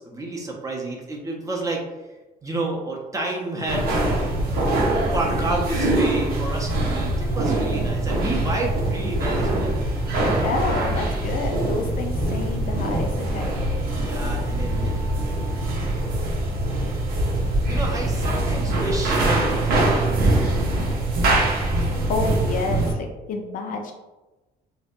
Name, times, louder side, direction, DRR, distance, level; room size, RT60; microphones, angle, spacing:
voice 1, 0.0-1.8 2.4-4.0 4.4-4.8 5.1-9.8 13.9-15.4 15.8-16.4 17.7-21.1, right 2 dB, 20° right, -1 dB, 0.5 m, -30 dB
sound 1, 3.7-22.9, right 1 dB, 65° right, 0.7 m, -23 dB
voice 2, 10.4-13.5 21.8-23.9, left 3 dB, 55° left, 3 dB, 0.4 m, -29 dB
2.6 x 2.1 x 2.5 m, 1.1 s
cardioid pair, 110°, 17 cm